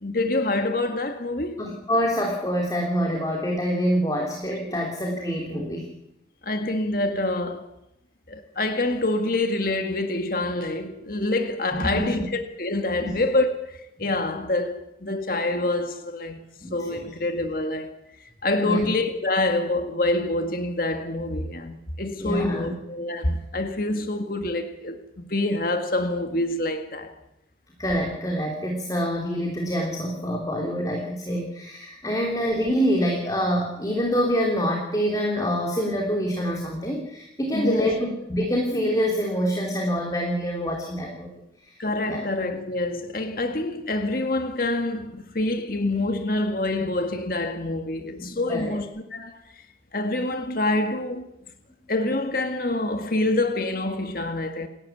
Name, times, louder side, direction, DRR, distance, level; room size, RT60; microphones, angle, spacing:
voice 1, 0.0-1.6 4.7-4.9 6.4-7.7 8.3-16.4 16.7-17.9 18.4-27.1 37.5-37.9 41.8-49.4 49.9-51.3 51.9-54.7, left 2 dB, 50° left, 1.9 m, -26 dB
voice 2, 1.6-5.9 11.7-12.3 13.0-13.2 16.6-17.1 18.6-18.9 22.2-22.7 27.8-41.3 41.6-41.8 42.1-42.2 48.0-48.7, equal, 20° left, 3.3 m, -26 dB
29.0 x 13.5 x 9.3 m
head